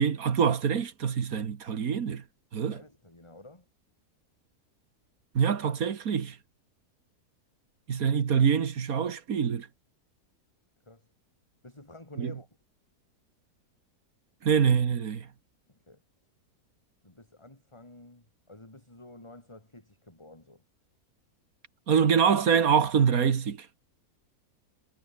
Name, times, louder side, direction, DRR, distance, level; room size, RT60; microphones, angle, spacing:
voice 1, 0.0-2.2 2.5-2.8 5.4-6.4 7.9-9.7 12.2-12.3 14.4-15.3 21.9-23.7, right 7 dB, 65° right, 1.9 m, -25 dB
voice 2, 2.5-3.7 10.8-11.1 11.6-12.5 15.7-16.0 17.0-20.6, left 2 dB, 15° left, 3.3 m, -51 dB
omnidirectional pair, 1.7 m